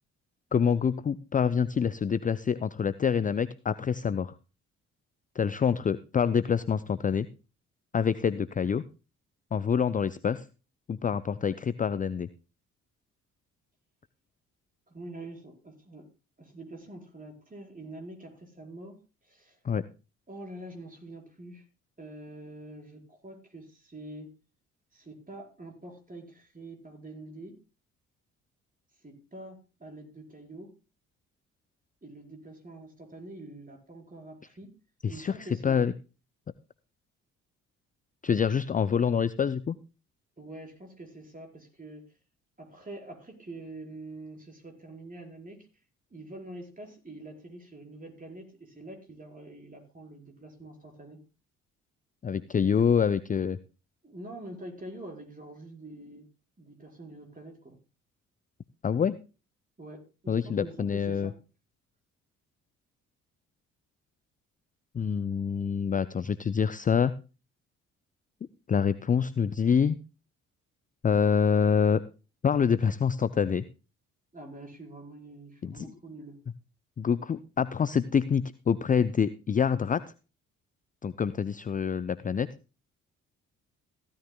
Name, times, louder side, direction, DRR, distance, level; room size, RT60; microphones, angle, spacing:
voice 1, 0.5-4.3 5.4-7.3 7.9-8.8 9.5-10.4 10.9-12.3 19.6-19.8 35.0-35.4 35.6-35.9 38.2-39.8 52.2-53.6 58.8-59.2 60.3-61.3 64.9-67.1 68.7-70.0 71.0-72.0 72.4-73.6 75.6-75.9 77.0-80.0 81.0-82.5, left 7 dB, 20° left, 15 dB, 0.5 m, -26 dB
voice 2, 14.9-16.1 16.4-19.6 20.3-21.6 22.0-24.3 24.9-27.6 29.0-30.7 32.0-34.7 35.1-35.8 40.4-42.1 42.6-45.7 46.1-51.2 54.0-56.3 56.6-57.8 59.8-61.4 74.3-76.4, right 2 dB, 20° right, 1 dB, 4.7 m, -45 dB
15.5 x 13.0 x 2.3 m, 0.33 s
figure-of-eight pair, 45°, 38 cm